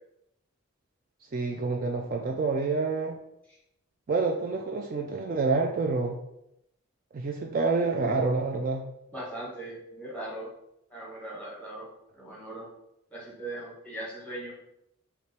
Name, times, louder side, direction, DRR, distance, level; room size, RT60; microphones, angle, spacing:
voice 1, 1.3-3.2 4.1-6.2 7.1-8.8, right 3 dB, 40° right, 1 dB, 0.3 m, -28 dB
voice 2, 9.1-10.5 10.9-11.9 12.2-12.7 13.1-14.5, right 1 dB, 5° left, -4 dB, 1.2 m, -39 dB
3.4 x 2.9 x 4.2 m, 0.81 s
head